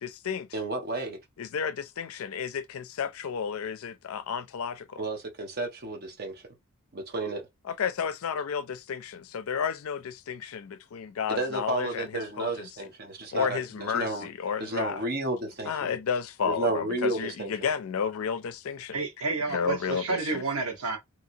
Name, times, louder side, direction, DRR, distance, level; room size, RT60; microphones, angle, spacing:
voice 1, 0.0-0.5 1.4-5.0 7.6-12.7 13.3-15.0 15.6-19.0 19.5-20.4, left 7 dB, 65° left, 0.4 m, -32 dB
voice 2, 0.5-1.2 5.0-6.4 6.9-7.4 11.3-14.3 14.6-15.9 16.4-17.7, right 2 dB, 45° right, 0.9 m, -32 dB
voice 3, 18.9-21.0, right 3 dB, 90° right, 1.3 m, -30 dB
3.0 x 2.8 x 2.6 m
head